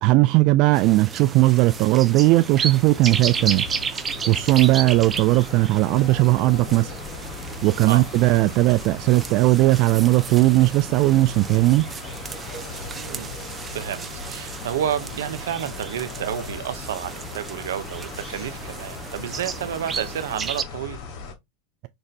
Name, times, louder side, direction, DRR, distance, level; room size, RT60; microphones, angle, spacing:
voice 1, 0.0-4.0 4.2-6.9 7.6-11.9, right 19 dB, 55° right, 0.3 m, -18 dB
sound 1, 0.7-20.6, right 6 dB, 25° right, 0.7 m, -34 dB
sound 2, 1.7-21.3, left 5 dB, 55° left, 1.7 m, -38 dB
voice 2, 12.9-13.4 13.7-21.0, right 10 dB, 80° right, 0.8 m, -30 dB
5.9 x 2.6 x 3.3 m
hypercardioid pair, 100°, 0 cm